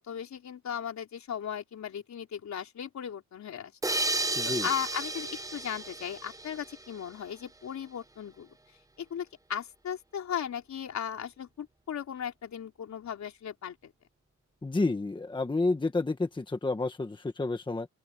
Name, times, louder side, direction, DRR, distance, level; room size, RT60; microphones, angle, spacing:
voice 1, 0.0-4.0 4.4-8.5 9.0-13.9, left 8 dB, 55° left, 3.9 m, -37 dB
sound 1, 3.8-7.2, right 2 dB, 10° right, 0.9 m, -33 dB
voice 2, 4.4-4.7 14.6-17.9, left 3 dB, 15° left, 1.4 m, -30 dB
open air
wide cardioid pair, 150°, 33 cm